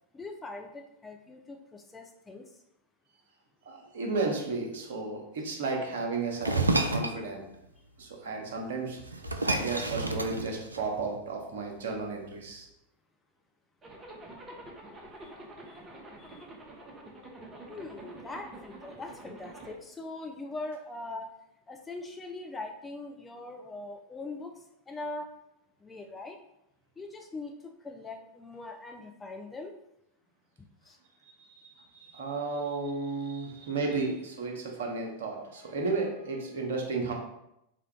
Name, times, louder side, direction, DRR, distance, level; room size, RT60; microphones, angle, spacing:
voice 1, 0.1-2.6 15.2-15.3 15.7-15.8 16.2-16.5 17.7-21.3 21.7-25.3 25.8-26.4 27.0-29.8 30.6-31.0, left 2 dB, 15° left, 3 dB, 0.3 m, -42 dB
voice 2, 3.6-7.4 8.0-9.0 9.4-12.6 31.6-37.1, right 3 dB, 60° right, 1 dB, 0.8 m, -33 dB
sound 1, 6.4-7.2 8.6-8.7 9.0-11.1, right 2 dB, 80° right, 0.3 m, -29 dB
Zipper (clothing), 13.8-19.7, right 1 dB, 20° right, 0.6 m, -47 dB
3.6 x 2.2 x 3.5 m, 0.82 s
figure-of-eight pair, 90°, 0 cm